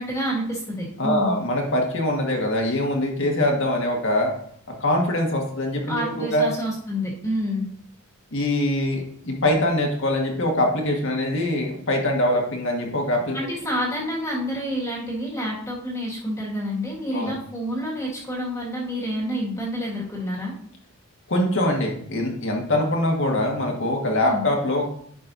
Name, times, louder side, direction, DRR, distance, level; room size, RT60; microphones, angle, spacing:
voice 1, 0.0-1.4 5.9-7.7 13.3-20.5 24.2-24.5, equal, 15° left, -5 dB, 1.9 m, -28 dB
voice 2, 1.0-4.3 4.8-6.5 8.3-13.4 17.1-17.3 21.3-24.8, left 1 dB, 65° left, 0 dB, 1.7 m, -23 dB
11.0 x 5.2 x 2.7 m, 0.65 s
head